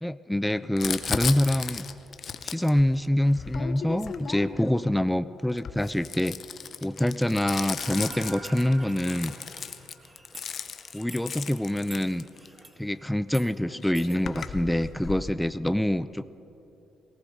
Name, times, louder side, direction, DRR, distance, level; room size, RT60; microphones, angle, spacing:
voice 1, 0.0-1.8 2.4-6.4 6.8-9.3 10.9-12.2 12.8-16.3, left 1 dB, 5° left, 13 dB, 0.3 m, -26 dB
Crumpling crinkling, 0.8-4.8 5.5-12.6 13.4-13.5 13.7-15.3, left 7 dB, 55° left, 0.8 m, -36 dB
sound 1, 7.8-12.8 13.2-13.5 13.9-14.2, right 2 dB, 20° right, 1.4 m, -50 dB
sound 2, 7.8-10.4, right 3 dB, 65° right, 2.2 m, -45 dB
18.5 x 18.5 x 3.9 m, 3.0 s
cardioid pair, 90°, 0 cm